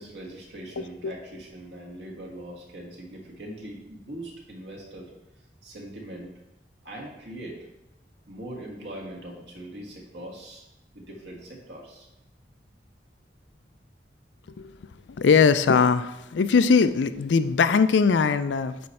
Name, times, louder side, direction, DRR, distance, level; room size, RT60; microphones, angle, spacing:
voice 1, 0.0-5.1 5.6-6.3 6.8-7.7 8.3-10.6 10.9-12.1, right 1 dB, 70° right, -1 dB, 1.8 m, -41 dB
voice 2, 0.8-1.1 14.6-14.7 15.1-18.9, left 5 dB, 85° left, 12 dB, 0.4 m, -21 dB
8.7 x 3.2 x 5.6 m, 0.90 s
head